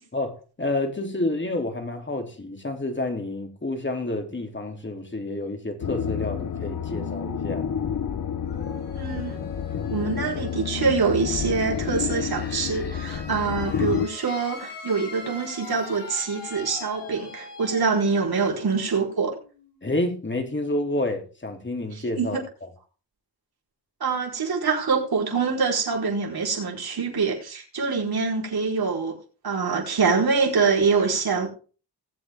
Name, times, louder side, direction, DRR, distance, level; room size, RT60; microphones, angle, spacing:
voice 1, 0.1-7.6 19.8-22.4, left 2 dB, 25° left, 3.2 m, -29 dB
sound 1, 5.8-14.1, left 7 dB, 50° left, 1.0 m, -29 dB
sound 2, 8.4-20.0, left 4 dB, 85° left, 5.1 m, -42 dB
voice 2, 9.0-9.4 9.9-19.3 21.9-22.4 24.0-29.2 29.4-31.5, right 5 dB, 65° right, 4.7 m, -25 dB
20.0 x 8.0 x 3.6 m
cardioid pair, 75°, 41 cm